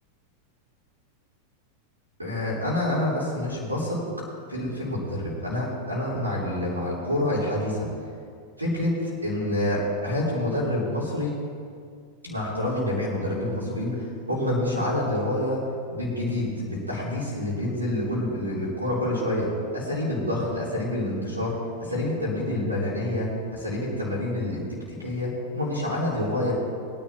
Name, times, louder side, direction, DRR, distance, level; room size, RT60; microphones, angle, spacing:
voice 1, 2.2-4.0 4.5-7.9 8.6-11.4 12.2-24.6 24.9-26.5, left 1 dB, 85° right, -6 dB, 3.7 m, -27 dB
21.5 x 10.5 x 2.9 m, 2.2 s
figure-of-eight pair, 90°, 0 cm